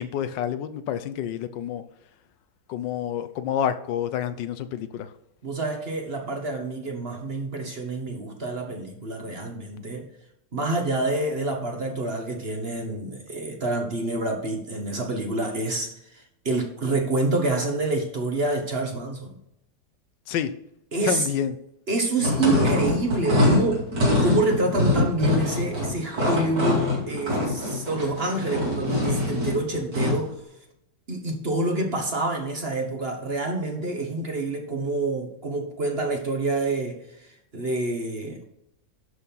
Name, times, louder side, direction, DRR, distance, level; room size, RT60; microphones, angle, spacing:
voice 1, 0.0-1.8 2.7-5.1 20.3-20.5 21.1-21.5, left 9 dB, 80° left, 1.3 m, -28 dB
voice 2, 5.4-10.1 10.5-19.4 20.9-21.3 21.9-23.9 24.2-30.4 31.1-37.0 37.5-38.4, right 2 dB, 35° right, 1.3 m, -27 dB
sound 1, 22.2-30.3, left 1 dB, 65° right, 3.2 m, -24 dB
11.5 x 4.4 x 5.4 m
omnidirectional pair, 2.0 m